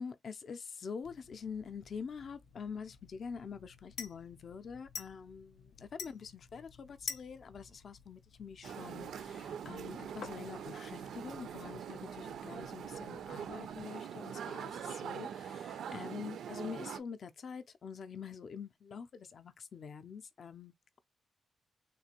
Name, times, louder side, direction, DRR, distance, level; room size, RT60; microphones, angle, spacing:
voice 1, 0.0-21.0, left 6 dB, 40° left, 0.4 m, -46 dB
sound 1, 1.0-13.8, left 6 dB, 90° left, 0.7 m, -51 dB
sound 2, 8.6-17.0, right 8 dB, 65° right, 0.4 m, -43 dB
3.7 x 2.5 x 2.8 m
wide cardioid pair, 175°, 0 cm